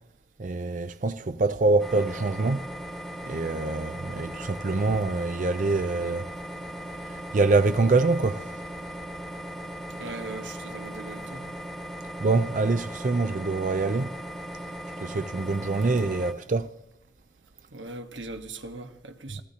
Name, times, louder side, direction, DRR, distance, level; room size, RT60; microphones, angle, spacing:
voice 1, 0.4-2.7 3.2-6.3 7.0-8.6 12.2-14.1 15.0-16.7, right 3 dB, 45° right, 0.4 m, -25 dB
sound 1, 1.8-16.3, equal, ahead, 1.3 m, -38 dB
voice 2, 9.9-11.5 17.7-19.4, right 2 dB, 90° right, 1.4 m, -39 dB
28.5 x 15.0 x 2.9 m
head